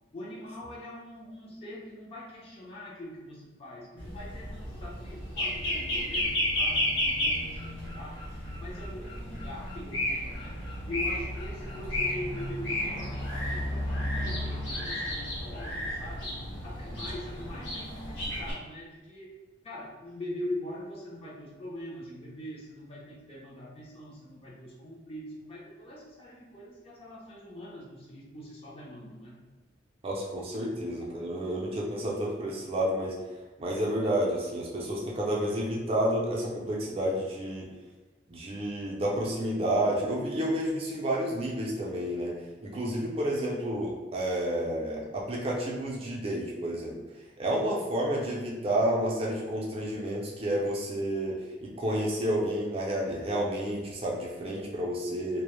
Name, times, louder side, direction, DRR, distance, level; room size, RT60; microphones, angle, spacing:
voice 1, 0.1-8.2 8.6-10.6 10.8-16.3 16.6-19.3 19.6-29.4, left 1 dB, 30° left, -5 dB, 0.5 m, -42 dB
sound 1, 4.0-18.5, left 1 dB, 70° left, 0.9 m, -32 dB
voice 2, 30.0-33.1 33.6-37.7 38.3-42.3 42.6-47.0 47.4-55.4, right 1 dB, 30° right, -3 dB, 0.4 m, -30 dB
2.1 x 2.0 x 3.0 m, 1.2 s
head